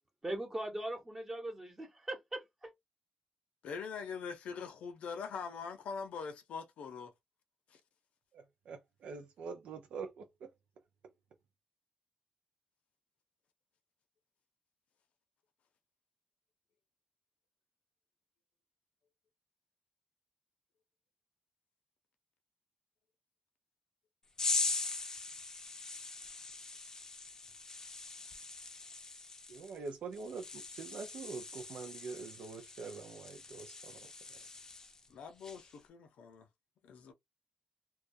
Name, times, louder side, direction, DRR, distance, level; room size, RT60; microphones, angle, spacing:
voice 1, 0.2-2.7, right 1 dB, 20° right, 0.9 m, -40 dB
voice 2, 3.6-7.1 7.7-7.8 35.1-36.5 36.8-37.1, left 6 dB, 85° left, 0.6 m, -43 dB
voice 3, 8.3-10.5 29.5-34.4, right 4 dB, 80° right, 0.4 m, -45 dB
sound 1, 24.4-35.1 35.4-35.8, left 3 dB, 30° left, 0.5 m, -41 dB
2.3 x 2.2 x 2.5 m
cardioid pair, 105°, 2 cm